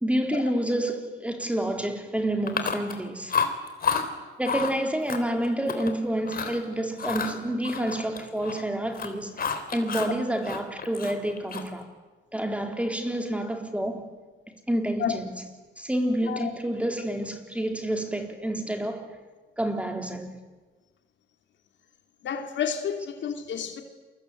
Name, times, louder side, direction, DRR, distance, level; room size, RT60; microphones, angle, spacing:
voice 1, 0.0-3.3 4.4-11.9 12.3-14.1 14.7-15.3 15.8-19.1 19.6-20.4, right 1 dB, 5° right, 3.9 m, -28 dB
Chewing mastication, 2.5-3.0 3.3-4.0 4.4-4.7 5.1-5.9 6.2-6.6 7.0-8.6 8.9-10.1 10.4-11.8, left 6 dB, 50° left, 3.6 m, -30 dB
voice 2, 22.2-23.8, left 8 dB, 65° left, 3.1 m, -30 dB
28.5 x 23.5 x 8.6 m
cardioid pair, 90°, 20 cm